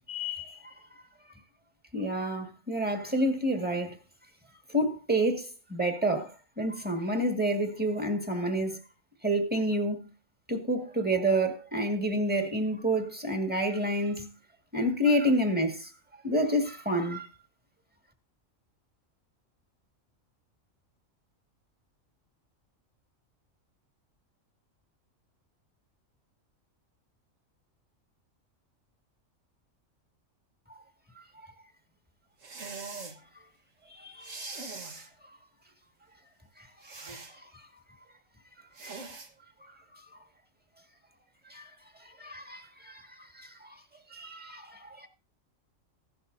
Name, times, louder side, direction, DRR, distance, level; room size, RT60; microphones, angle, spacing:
voice 1, 0.1-0.7 1.9-4.0 4.7-8.8 9.2-10.0 10.5-14.3 14.7-15.9 16.2-17.3 31.2-31.3 33.9-34.7 36.6-37.6 38.8-39.0 39.6-39.7 41.4-41.7 42.0-43.8 44.1-45.1, right 1 dB, 5° right, 1.9 m, -29 dB
sound 1, 32.4-33.2 34.2-35.1 36.8-37.3 38.7-39.3, right 4 dB, 70° right, 1.8 m, -41 dB
15.5 x 12.0 x 2.7 m
omnidirectional pair, 1.4 m